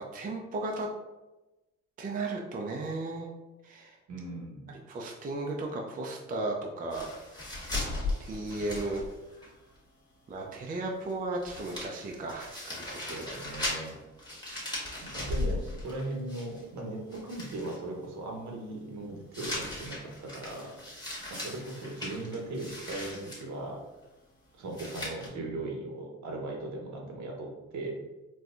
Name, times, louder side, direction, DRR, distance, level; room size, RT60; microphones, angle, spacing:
voice 1, 0.1-0.9 2.0-3.3 3.6-4.0 4.9-7.1 8.2-9.0 10.3-13.3 14.6-14.8, right 2 dB, 30° right, 0 dB, 0.5 m, -35 dB
voice 2, 4.1-4.7 13.1-14.0 15.0-20.8 21.3-23.8 24.6-28.0, right 2 dB, 65° right, 0 dB, 1.0 m, -38 dB
sound 1, 6.9-9.5 9.7-9.8 11.1-11.2 11.4-16.8 17.1-17.8 19.3-23.4 24.7-25.3, left 2 dB, 15° left, 1.3 m, -37 dB
4.2 x 2.3 x 2.4 m, 1.1 s
cardioid pair, 90°, 30 cm